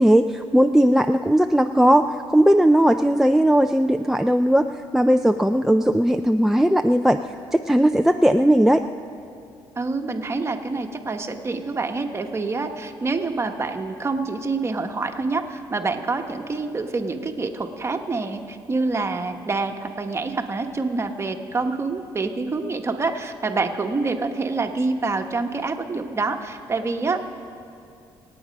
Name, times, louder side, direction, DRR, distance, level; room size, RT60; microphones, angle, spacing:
voice 1, 0.0-4.7 4.9-7.2 7.5-8.8, right 1 dB, 5° right, 6 dB, 0.4 m, -18 dB
voice 2, 9.7-27.2, right 3 dB, 30° right, 5 dB, 1.3 m, -26 dB
26.0 x 8.8 x 5.3 m, 2.5 s
cardioid pair, 85°, 9 cm